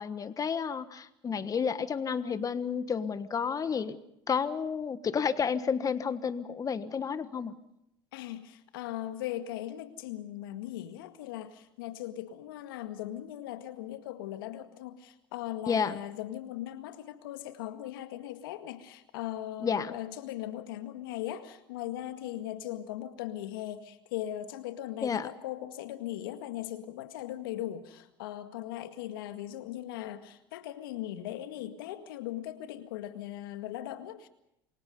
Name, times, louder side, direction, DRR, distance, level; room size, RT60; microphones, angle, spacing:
voice 1, 0.0-4.0 4.3-7.5 15.7-16.0 19.6-19.9 25.0-25.3, left 6 dB, 30° left, 1.4 m, -31 dB
voice 2, 8.1-34.3, left 13 dB, 80° left, 1.9 m, -39 dB
28.0 x 23.5 x 5.4 m
hypercardioid pair, 80°, 12 cm